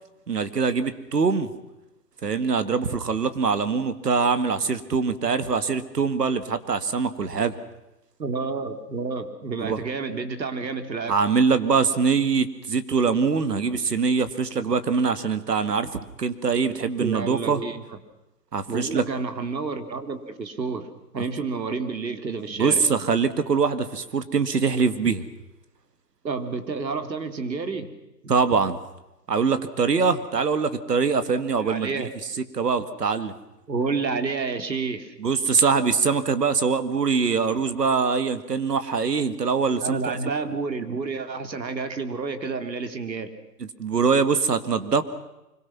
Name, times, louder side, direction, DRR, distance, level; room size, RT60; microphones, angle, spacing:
voice 1, 0.3-1.5 2.2-7.6 9.6-9.8 11.1-17.6 18.5-19.0 22.6-25.2 28.3-28.8 29.3-32.1 32.5-33.3 35.2-40.2 43.8-45.0, right 5 dB, 70° right, 12 dB, 2.2 m, -23 dB
voice 2, 8.2-11.1 17.0-17.8 18.7-22.8 26.2-27.9 28.2-28.3 31.6-32.1 33.7-35.1 39.8-43.3, right 4 dB, 85° right, 8 dB, 3.2 m, -30 dB
25.5 x 23.0 x 6.0 m, 0.94 s
hypercardioid pair, 175°, 50 cm